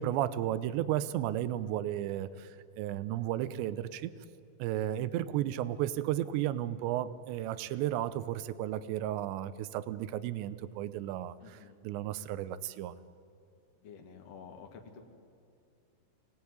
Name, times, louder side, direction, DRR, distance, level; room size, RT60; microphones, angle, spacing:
voice 1, 0.0-2.5 2.8-4.1 4.6-11.6 11.8-13.0, right 12 dB, 80° right, 14 dB, 2.9 m, -33 dB
voice 2, 11.4-11.8 13.8-15.0, left 6 dB, 50° left, 2 dB, 2.0 m, -50 dB
24.5 x 18.5 x 9.7 m, 2.5 s
omnidirectional pair, 5.5 m